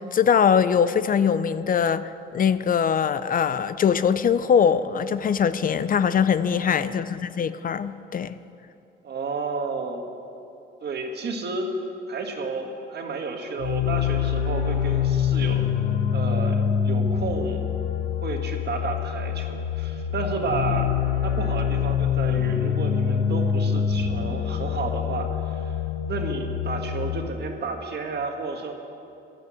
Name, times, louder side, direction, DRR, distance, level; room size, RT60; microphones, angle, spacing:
voice 1, 0.0-8.3, left 7 dB, 45° left, 14 dB, 0.5 m, -22 dB
voice 2, 6.5-7.0 9.0-10.2 10.8-11.7 12.1-15.6 16.1-17.7 18.2-20.9 21.2-25.8 26.1-28.7, right 4 dB, 55° right, 4 dB, 1.7 m, -31 dB
sound 1, 13.6-27.3, left 8 dB, 90° left, 0.8 m, -25 dB
12.0 x 10.5 x 7.6 m, 2.7 s
cardioid pair, 90°, 20 cm